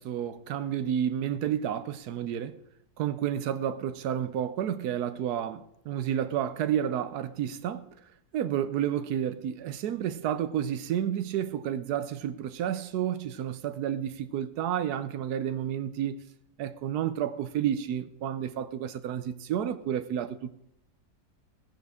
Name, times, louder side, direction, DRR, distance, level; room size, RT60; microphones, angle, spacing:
voice 1, 0.0-2.6 3.0-7.9 8.3-16.2 16.6-20.5, right 10 dB, 90° right, 1.2 m, -30 dB
16.5 x 10.0 x 3.6 m
omnidirectional pair, 1.6 m